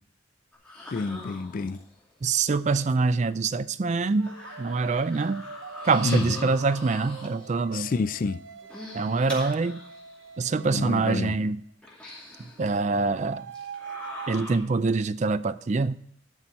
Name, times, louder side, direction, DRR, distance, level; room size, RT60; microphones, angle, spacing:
sound 1, 0.5-2.0 3.3-3.4 4.0-7.6 8.5-10.2 10.7-10.8 11.8-12.7 13.5-14.6, left 2 dB, 5° left, 2.5 m, -42 dB
voice 1, 0.9-1.8 6.0-6.5 7.7-8.4 10.7-11.3, left 4 dB, 45° left, 0.4 m, -28 dB
voice 2, 2.2-4.3 4.6-5.4 5.8-7.9 8.9-9.8 10.4-11.6 12.6-13.5 14.3-16.0, right 4 dB, 35° right, 0.4 m, -25 dB
sound 2, 4.1-11.5 12.6-14.3, right 6 dB, 75° right, 0.7 m, -44 dB
11.5 x 6.1 x 5.4 m
head